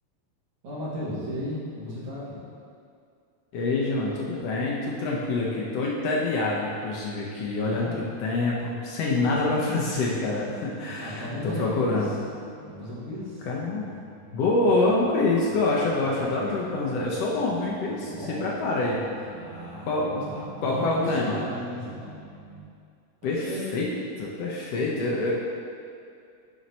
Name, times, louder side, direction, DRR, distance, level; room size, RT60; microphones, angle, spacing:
voice 1, 0.6-2.5 7.5-8.2 11.0-12.1 12.7-13.5 16.1-16.4 18.1-18.4 19.3-22.2 23.4-23.7, left 1 dB, 85° right, -7 dB, 3.1 m, -35 dB
voice 2, 3.5-12.1 13.5-13.9 14.3-19.0 19.8-20.1 20.6-21.3 23.2-23.9 24.2-25.3, left 2 dB, 70° left, -4 dB, 1.7 m, -26 dB
sound 1, 9.1-22.6, right 2 dB, 85° left, 2.4 m, -46 dB
9.3 x 4.0 x 4.2 m, 2.4 s
omnidirectional pair, 3.4 m